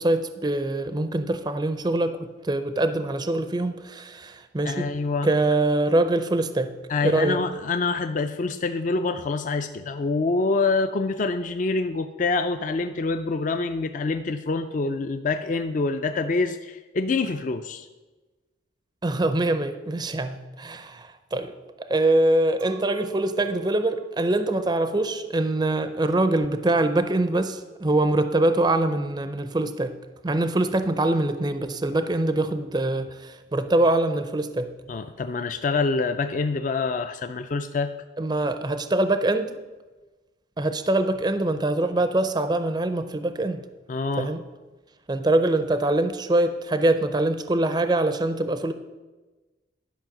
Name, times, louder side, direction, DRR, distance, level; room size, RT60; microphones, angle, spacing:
voice 1, 0.0-4.9 5.2-6.7 7.0-7.4 19.0-21.5 21.8-29.9 30.2-34.7 38.2-39.5 40.6-43.6 44.2-44.4 45.1-48.7, right 2 dB, 20° right, 10 dB, 0.4 m, -24 dB
voice 2, 4.6-5.3 6.9-17.9 34.9-37.9 43.9-44.3, left 3 dB, 40° left, 8 dB, 0.4 m, -26 dB
Chink clink, 22.6-28.1, right 4 dB, 90° right, 1.0 m, -43 dB
11.5 x 5.6 x 5.9 m, 1.2 s
head